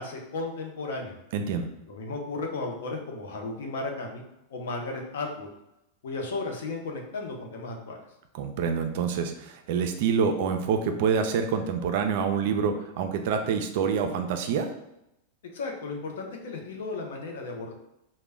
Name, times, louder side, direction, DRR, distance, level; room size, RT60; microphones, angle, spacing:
voice 1, 0.0-1.1 1.9-4.2 4.5-5.5 6.0-8.0 15.5-17.7, left 3 dB, 85° left, 2 dB, 0.6 m, -34 dB
voice 2, 1.3-1.7 8.3-14.7, right 6 dB, 60° right, 6 dB, 0.3 m, -26 dB
2.1 x 2.0 x 3.3 m, 0.86 s
supercardioid pair, 145°, 0 cm